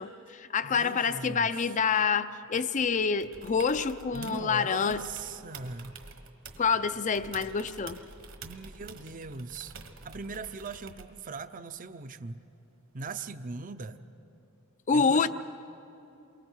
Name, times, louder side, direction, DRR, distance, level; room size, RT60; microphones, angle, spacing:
voice 1, 0.0-5.0 6.6-8.0 14.9-15.3, left 5 dB, 35° left, 13 dB, 0.5 m, -27 dB
voice 2, 0.6-1.7 4.1-6.0 8.4-9.7 10.0-12.4 12.9-14.0 14.9-15.3, right 3 dB, 40° right, 11 dB, 0.6 m, -40 dB
sound 1, 3.2-4.5 4.8-6.8 7.1-11.2 13.1-13.2, right 4 dB, 60° right, 1.4 m, -48 dB
28.5 x 23.5 x 4.7 m, 2.9 s
head